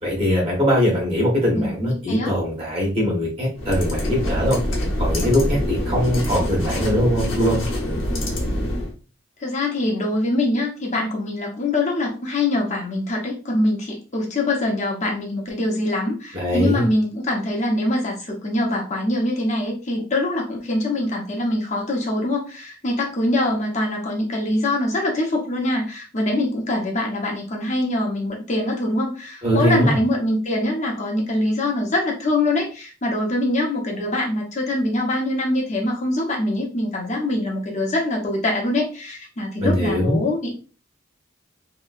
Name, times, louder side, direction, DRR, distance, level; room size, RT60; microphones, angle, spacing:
voice 1, 0.0-4.6 5.0-7.6 16.3-16.9 29.4-30.0 39.6-40.2, equal, 30° right, -3 dB, 1.2 m, -21 dB
voice 2, 1.5-2.3 9.4-40.5, left 1 dB, 35° left, -1 dB, 0.9 m, -23 dB
sound 1, 3.5-8.9, left 1 dB, 70° left, 1.0 m, -25 dB
3.0 x 2.9 x 2.4 m, 0.35 s
head